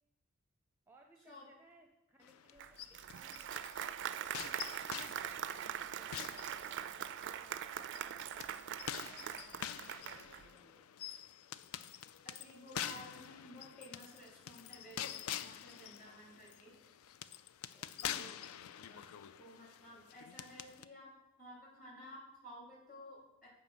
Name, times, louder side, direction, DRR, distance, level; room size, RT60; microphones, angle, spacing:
voice 1, 0.9-8.5 8.8-11.1 17.7-18.3, right 1 dB, 10° right, 2 dB, 0.6 m, -66 dB
sound 1, 2.2-3.8 4.3-7.2 7.8-20.9, left 10 dB, 70° left, 0.3 m, -46 dB
Applause, 2.6-10.5, right 9 dB, 55° right, 0.3 m, -42 dB
voice 2, 12.2-16.8 18.0-18.4 18.9-23.5, equal, 40° left, -3 dB, 2.9 m, -54 dB
7.3 x 5.5 x 5.6 m, 0.92 s
head